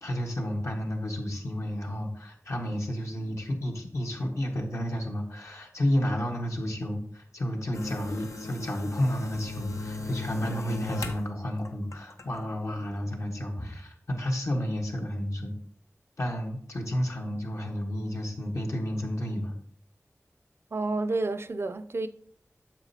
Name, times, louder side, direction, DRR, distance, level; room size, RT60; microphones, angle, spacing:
voice 1, 0.0-15.6 16.2-19.6, equal, 70° left, 1.3 m, -31 dB
Can vibrating, 7.7-11.2 11.6-12.4, left 2 dB, 85° left, 0.8 m, -36 dB
voice 2, 20.7-22.1, right 2 dB, 55° right, 0.4 m, -29 dB
8.9 x 6.6 x 2.8 m
wide cardioid pair, 65°, 5 cm